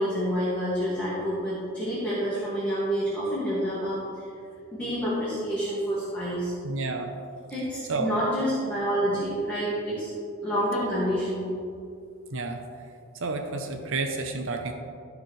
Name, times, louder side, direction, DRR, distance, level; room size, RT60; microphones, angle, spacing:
voice 1, 0.0-4.3 4.7-6.5 7.5-10.1 10.4-11.5, equal, 5° left, -10 dB, 2.0 m, -28 dB
voice 2, 6.6-7.1 7.9-8.1 12.3-12.6 13.2-14.7, right 3 dB, 60° right, 4 dB, 0.7 m, -30 dB
15.5 x 5.2 x 3.2 m, 2.4 s
head